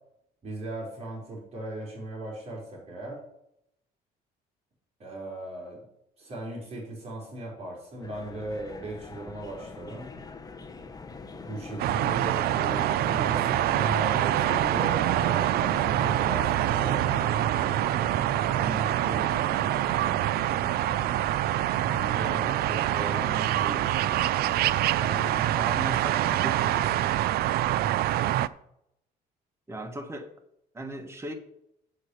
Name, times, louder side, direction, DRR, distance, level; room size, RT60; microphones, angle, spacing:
voice 1, 0.4-3.2 5.0-5.8 6.2-10.1 11.4-17.8 18.4-20.0 21.8-24.4 25.0-26.3, right 1 dB, 40° right, 4.0 m, -38 dB
sound 1, 8.0-26.9, left 4 dB, 20° left, 1.0 m, -43 dB
sound 2, 11.8-28.5, right 13 dB, 65° right, 0.4 m, -25 dB
voice 2, 25.3-26.9 29.7-30.3 30.7-31.3, right 1 dB, 15° right, 1.3 m, -37 dB
7.2 x 6.5 x 7.8 m
cardioid pair, 110°, 17 cm